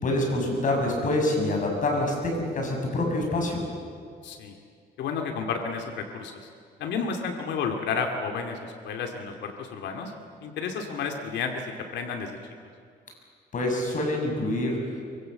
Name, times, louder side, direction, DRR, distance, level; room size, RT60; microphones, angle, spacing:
voice 1, 0.0-3.6 13.5-14.8, left 1 dB, 45° left, 1 dB, 7.2 m, -26 dB
voice 2, 4.2-4.6 5.0-6.5 6.8-10.1 10.4-12.4, left 5 dB, 80° left, 3 dB, 2.5 m, -31 dB
24.0 x 24.0 x 7.9 m, 2.2 s
cardioid pair, 115°, 18 cm